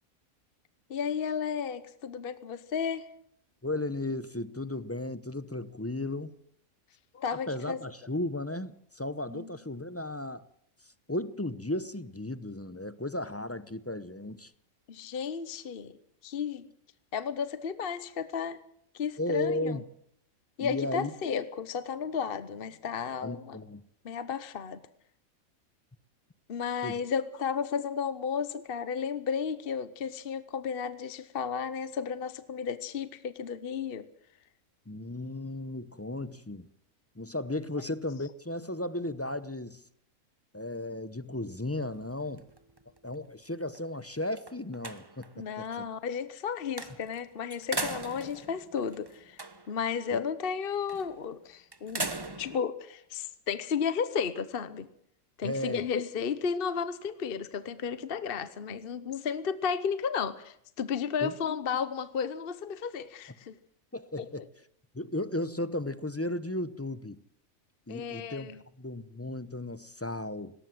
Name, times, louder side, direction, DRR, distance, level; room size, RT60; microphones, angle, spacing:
voice 1, 0.9-3.1 7.1-7.8 9.3-9.5 14.9-15.9 16.2-16.7 17.1-18.6 18.9-19.8 20.6-23.6 24.0-24.8 26.5-34.1 37.8-37.9 45.4-49.4 49.7-54.9 55.4-63.6 64.2-64.4 67.9-68.6, left 6 dB, 45° left, 14 dB, 1.1 m, -33 dB
voice 2, 3.6-6.4 7.5-10.4 11.1-14.5 19.2-19.8 20.6-21.1 23.2-23.8 26.8-27.0 34.9-36.7 37.2-39.8 40.5-42.4 43.0-45.9 50.1-50.2 55.4-55.8 61.2-61.3 63.9-64.4 64.9-67.2 67.9-68.5 68.8-70.5, left 1 dB, 15° left, 15 dB, 0.6 m, -35 dB
sound 1, 41.7-43.3 43.7-43.8 44.2-45.4 46.8-47.2 47.5-49.8 50.9-51.2 51.7-52.6, right 2 dB, 20° right, 1.1 m, -39 dB
19.0 x 18.5 x 7.8 m, 0.68 s
omnidirectional pair, 1.5 m